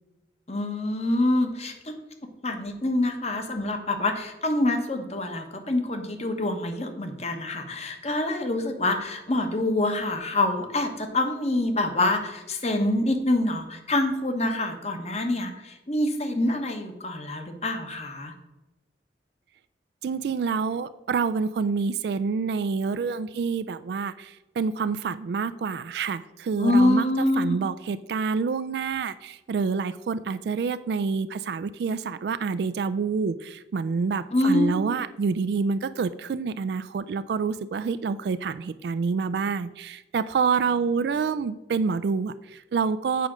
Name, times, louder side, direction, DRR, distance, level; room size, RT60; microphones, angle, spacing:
voice 1, 0.5-1.9 2.4-18.3 26.6-27.6 34.3-34.8, left 2 dB, 40° left, 6 dB, 1.1 m, -26 dB
voice 2, 20.0-43.3, right 5 dB, 65° right, 14 dB, 0.3 m, -27 dB
8.4 x 4.9 x 6.2 m, 1.0 s
head